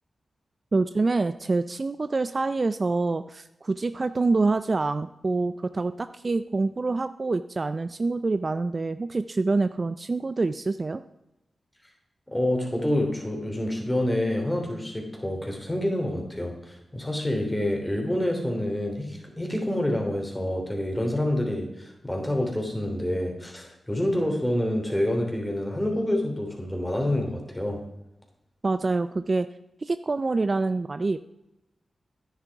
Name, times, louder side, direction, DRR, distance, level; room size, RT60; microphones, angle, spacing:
voice 1, 0.7-11.0 28.6-29.5 29.8-31.2, right 3 dB, 45° right, 12 dB, 0.4 m, -26 dB
voice 2, 12.3-27.8, left 1 dB, 10° left, 2 dB, 3.1 m, -27 dB
10.5 x 9.8 x 4.7 m, 0.87 s
cardioid pair, 65°, 0 cm